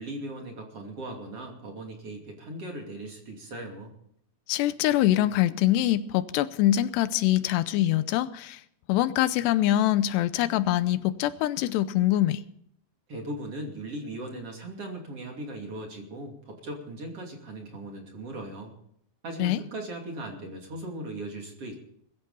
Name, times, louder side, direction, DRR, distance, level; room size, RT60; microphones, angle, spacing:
voice 1, 0.0-3.9 13.1-18.7 19.2-21.8, right 1 dB, 40° right, 3.2 m, -38 dB
voice 2, 4.5-8.6 8.9-12.4 19.4-19.6, left 13 dB, 85° left, 2.8 m, -24 dB
21.0 x 14.5 x 4.2 m
omnidirectional pair, 4.8 m